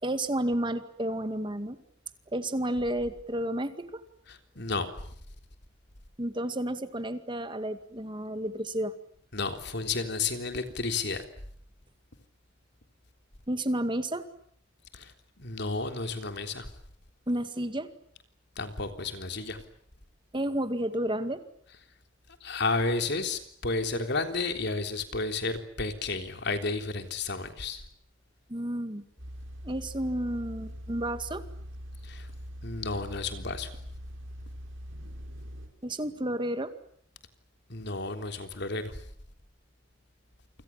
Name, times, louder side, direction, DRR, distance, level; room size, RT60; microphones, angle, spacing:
voice 1, 0.0-1.8 2.3-4.0 6.2-8.9 13.5-14.2 17.3-17.9 20.3-21.4 28.5-29.0 29.6-31.4 35.8-36.7, right 1 dB, 25° right, 10 dB, 2.1 m, -31 dB
voice 2, 4.3-4.9 9.3-11.2 14.9-15.1 15.4-16.7 18.6-19.6 22.4-27.8 32.0-32.3 32.6-33.7 37.7-39.0, left 3 dB, 60° left, 7 dB, 3.6 m, -32 dB
sound 1, 29.2-35.7, equal, 75° right, 6.3 m, -42 dB
29.0 x 26.5 x 7.4 m, 0.64 s
head